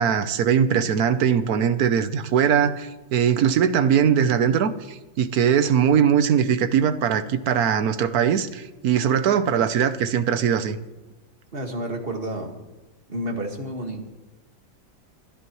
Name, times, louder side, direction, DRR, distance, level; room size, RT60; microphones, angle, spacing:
voice 1, 0.0-10.8, right 8 dB, 65° right, 1.2 m, -21 dB
voice 2, 11.5-12.6 13.1-14.1, right 1 dB, 30° right, 2.0 m, -30 dB
27.5 x 10.5 x 3.1 m
omnidirectional pair, 1.9 m